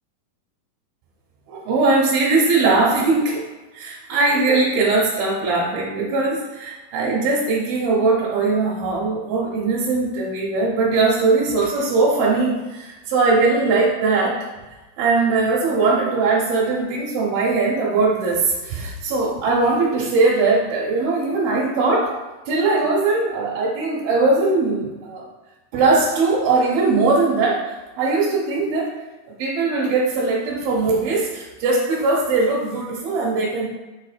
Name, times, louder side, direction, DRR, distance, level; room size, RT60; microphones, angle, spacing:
voice 1, 1.5-3.4 3.7-14.4 15.0-22.1 22.5-25.3 25.7-27.6 28.0-28.9 29.4-33.7, right 3 dB, 70° right, -5 dB, 2.6 m, -20 dB
6.9 x 3.4 x 5.0 m, 1.2 s
omnidirectional pair, 4.7 m